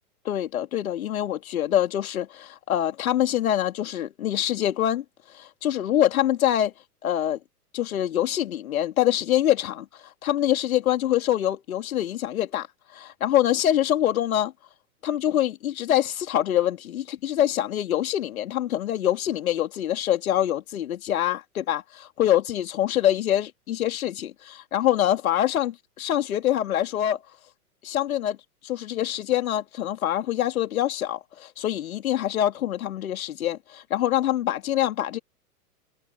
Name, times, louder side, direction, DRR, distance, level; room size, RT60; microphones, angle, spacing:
voice 1, 0.2-5.0 5.3-6.7 7.0-7.4 7.7-12.7 12.9-14.5 15.0-27.2 27.8-28.4 28.6-35.2, left 11 dB, 60° left, 3.1 m, -25 dB
hypercardioid pair, 115°, 47 cm